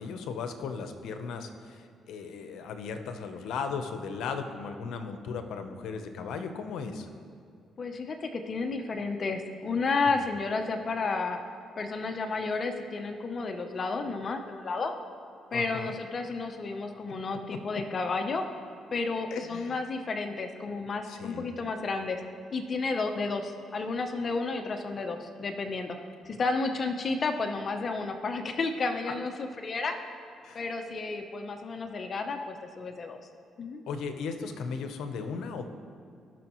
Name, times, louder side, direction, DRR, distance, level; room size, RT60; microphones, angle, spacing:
voice 1, 0.0-7.1 15.5-16.0 17.5-17.6 19.3-19.8 21.0-21.5 30.4-30.6 33.9-35.7, left 5 dB, 80° left, 7 dB, 0.8 m, -36 dB
voice 2, 7.8-11.4 11.8-14.9 15.5-18.4 18.9-22.2 22.5-26.0 26.3-30.0 30.5-33.2 33.6-33.8, left 3 dB, 45° left, 5 dB, 0.8 m, -32 dB
18.0 x 6.3 x 3.1 m, 2.3 s
cardioid pair, 90°, 0 cm